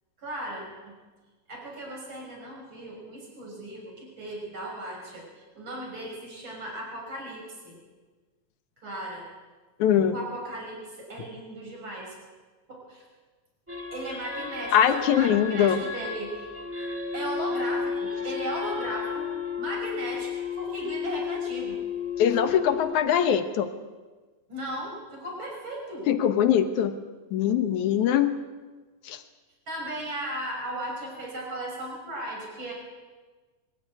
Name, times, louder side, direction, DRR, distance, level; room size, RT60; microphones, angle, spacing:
voice 1, 0.2-0.9 1.5-5.3 5.5-7.8 8.8-9.3 10.1-12.1 12.7-13.0 13.9-16.5 17.1-21.8 24.5-26.1 29.7-32.7, right 1 dB, 35° right, -1 dB, 6.6 m, -36 dB
voice 2, 9.8-10.1 14.7-15.8 22.2-23.7 26.1-27.0 27.3-28.4 29.1-29.2, left 9 dB, 70° left, 9 dB, 2.5 m, -22 dB
sound 1, 13.7-22.9, left 6 dB, 5° right, 1.6 m, -33 dB
23.5 x 13.5 x 9.6 m, 1.3 s
omnidirectional pair, 3.8 m